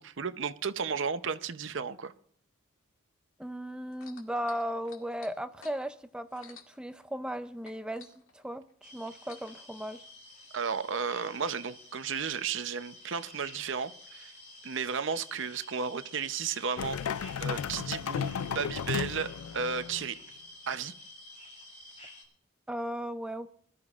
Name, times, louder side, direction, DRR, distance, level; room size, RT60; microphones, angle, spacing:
voice 1, 0.0-2.1 10.5-14.3 14.6-20.2 20.7-20.9, right 6 dB, 60° right, 0.7 m, -34 dB
voice 2, 3.4-8.1 8.3-8.7 8.9-10.0 22.7-23.5, equal, 5° right, 0.4 m, -36 dB
sound 1, 3.9-7.4 7.6-9.7 10.4-10.5, left 5 dB, 75° left, 2.1 m, -54 dB
sound 2, 8.8-22.2, left 1 dB, 35° left, 2.8 m, -51 dB
sound 3, 16.8-20.1, left 7 dB, 90° left, 0.4 m, -34 dB
21.5 x 12.5 x 2.4 m
head